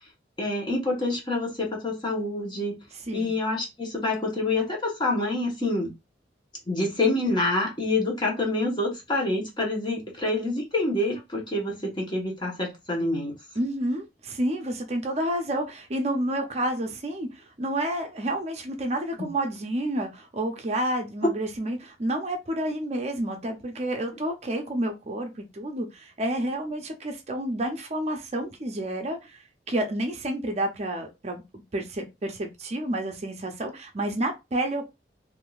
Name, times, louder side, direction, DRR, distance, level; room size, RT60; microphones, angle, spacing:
voice 1, 0.4-2.7 3.1-5.9 6.7-13.3 19.2-19.3 21.2-21.3, left 2 dB, 25° left, 1.0 m, -27 dB
voice 2, 13.6-31.4 31.7-34.9, right 1 dB, 35° right, 0.5 m, -30 dB
3.5 x 2.5 x 2.3 m
head